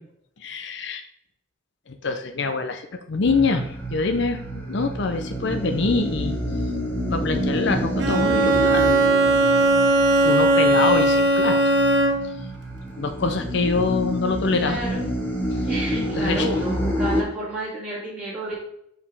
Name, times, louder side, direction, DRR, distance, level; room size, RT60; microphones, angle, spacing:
voice 1, 0.4-1.0 1.9-6.3 7.1-9.0 10.2-11.8 13.0-14.8 15.5-15.7 16.2-16.5, left 3 dB, 60° left, 7 dB, 0.7 m, -25 dB
sound 1, 3.2-17.2, equal, 10° left, 1.4 m, -28 dB
Bowed string instrument, 8.0-12.4, right 2 dB, 60° right, 1.2 m, -18 dB
voice 2, 14.6-15.0 15.7-18.5, right 1 dB, 10° right, -11 dB, 2.7 m, -30 dB
5.2 x 5.0 x 5.4 m, 0.72 s
head